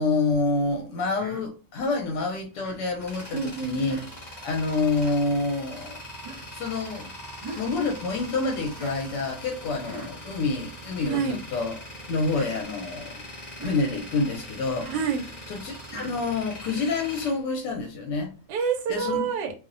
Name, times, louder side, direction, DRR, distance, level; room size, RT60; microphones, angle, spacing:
voice 1, 0.0-4.0 4.4-6.0 6.5-7.1 7.6-11.8 12.1-13.2 13.6-14.9 15.5-18.3 18.9-19.2, left 3 dB, 80° left, 1.2 m, -27 dB
Human voice, 1.1-1.4 2.5-2.8 3.8-4.1 4.9-5.2 6.2-6.5 7.4-7.7 8.7-9.0 9.8-10.1 10.9-11.3 12.2-12.5 13.5-13.8 14.8-15.1 15.9-16.2, right 2 dB, 30° right, 0.5 m, -42 dB
Tools, 2.5-18.3, equal, 35° left, 0.7 m, -42 dB
voice 2, 3.3-3.8 11.1-11.4 14.9-15.3 18.5-19.5, right 6 dB, 80° right, 1.1 m, -27 dB
2.9 x 2.0 x 2.5 m
omnidirectional pair, 1.8 m